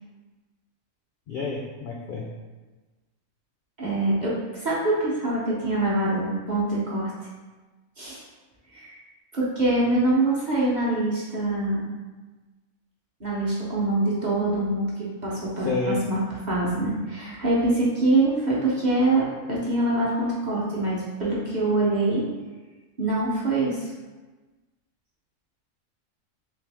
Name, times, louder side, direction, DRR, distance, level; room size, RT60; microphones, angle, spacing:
voice 1, 1.3-2.2 15.6-16.0, left 3 dB, 65° left, -2 dB, 0.5 m, -29 dB
voice 2, 3.8-7.1 8.0-8.2 8.7-9.0 9.3-11.8 13.2-16.2 16.5-22.2 23.0-23.9, right 2 dB, 40° right, -6 dB, 0.7 m, -24 dB
3.3 x 3.1 x 3.4 m, 1.2 s
omnidirectional pair, 1.4 m